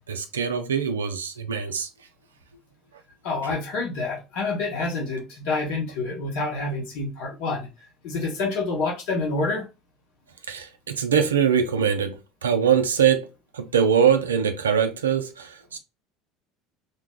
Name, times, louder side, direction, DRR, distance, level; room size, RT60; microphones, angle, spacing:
voice 1, 0.1-1.9 10.5-13.3 13.5-15.8, right 7 dB, 85° right, 0.3 m, -23 dB
voice 2, 3.2-7.7 8.0-9.7, left 3 dB, 65° left, 1.1 m, -27 dB
2.7 x 2.0 x 3.5 m
hypercardioid pair, 70°, 0 cm